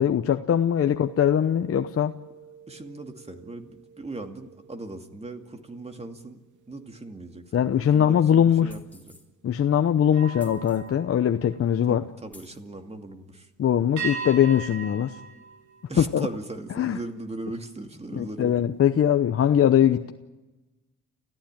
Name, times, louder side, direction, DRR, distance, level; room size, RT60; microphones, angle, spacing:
voice 1, 0.0-2.2 7.5-8.7 9.4-12.0 13.6-15.2 16.0-16.3 16.8-17.0 18.1-20.1, left 9 dB, 50° left, 7 dB, 0.9 m, -21 dB
sound 1, 0.8-6.3 6.8-7.1 10.1-12.2 14.0-16.5, right 6 dB, 80° right, 2.9 m, -41 dB
voice 2, 2.7-6.4 6.7-9.2 11.9-13.5 15.9-18.6, right 2 dB, 20° right, 6 dB, 2.5 m, -39 dB
sound 2, 8.7-9.3 10.4-10.9 11.7-11.8 12.3-12.6, left 2 dB, 5° left, 4.2 m, -52 dB
29.5 x 15.0 x 9.0 m, 1.1 s
cardioid pair, 90°, 30 cm